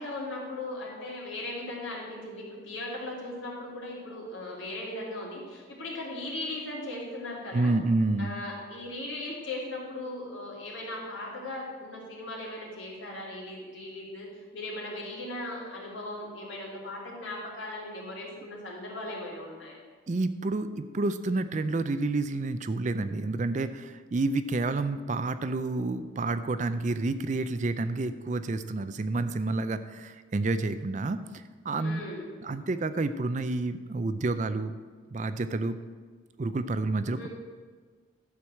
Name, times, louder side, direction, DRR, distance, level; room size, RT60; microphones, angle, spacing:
voice 1, 0.0-7.7 8.2-14.3 14.5-19.8 31.8-32.3 37.1-37.3, left 1 dB, 75° left, -4 dB, 3.1 m, -38 dB
voice 2, 7.5-8.3 20.1-31.2 31.7-32.0 32.4-34.7 35.1-35.8 36.4-37.3, right 2 dB, 40° right, 12 dB, 0.4 m, -29 dB
12.0 x 4.7 x 7.6 m, 1.5 s
head